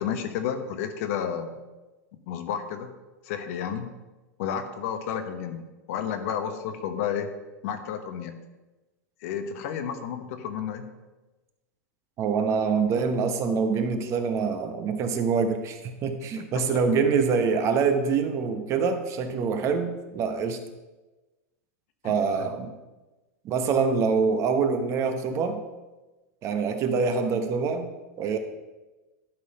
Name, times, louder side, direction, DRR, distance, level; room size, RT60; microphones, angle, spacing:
voice 1, 0.0-1.7 2.3-2.9 3.2-3.9 4.4-7.3 7.6-8.4 9.2-10.9 16.7-16.8 22.0-22.5, left 8 dB, 60° left, 8 dB, 1.0 m, -31 dB
voice 2, 12.2-20.6 22.0-22.7 23.4-25.6 26.4-27.9 28.2-28.4, right 5 dB, 35° right, 7 dB, 0.9 m, -25 dB
11.5 x 4.1 x 5.4 m, 1.1 s
supercardioid pair, 135°, 9 cm